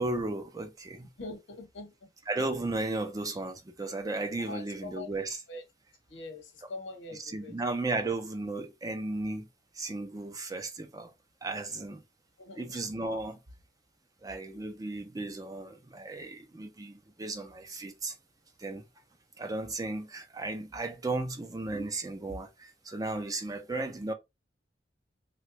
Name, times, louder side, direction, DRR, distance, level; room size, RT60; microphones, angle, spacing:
voice 1, 0.0-1.1 2.3-5.4 7.1-9.5 9.8-11.1 11.4-12.0 12.6-13.4 14.2-18.2 18.6-18.9 19.4-24.1, right 2 dB, 20° right, 0.4 m, -35 dB
voice 2, 1.2-1.9 4.5-5.2 5.5-5.6 6.1-7.6 12.4-12.8, left 2 dB, 85° left, 1.0 m, -43 dB
3.3 x 2.1 x 2.9 m
head